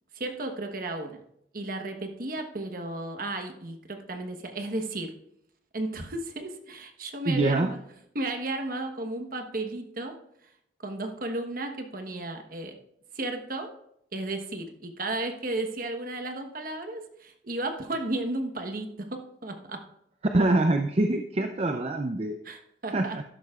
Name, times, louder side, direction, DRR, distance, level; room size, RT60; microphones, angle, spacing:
voice 1, 0.1-1.2 1.5-5.1 5.7-7.8 8.1-10.1 10.8-12.7 13.1-13.7 14.1-19.8 22.4-23.2, right 2 dB, 50° right, 5 dB, 1.2 m, -34 dB
voice 2, 7.3-7.7 20.3-22.4 22.9-23.2, right 2 dB, 35° right, 5 dB, 0.5 m, -25 dB
12.5 x 11.0 x 2.4 m, 0.75 s
head